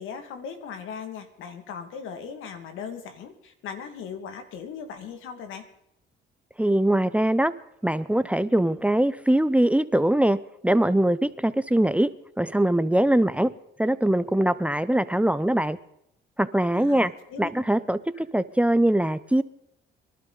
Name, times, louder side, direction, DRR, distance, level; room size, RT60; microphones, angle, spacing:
voice 1, 0.0-5.7 16.7-17.5 17.8-17.9, left 6 dB, 90° left, 8 dB, 2.0 m, -38 dB
voice 2, 6.6-7.5 7.8-10.4 10.6-12.1 12.4-13.5 13.8-15.8 16.4-17.1 17.4-19.4, right 1 dB, 5° right, 14 dB, 0.6 m, -22 dB
23.0 x 12.0 x 3.9 m, 0.79 s
cardioid pair, 90°, 20 cm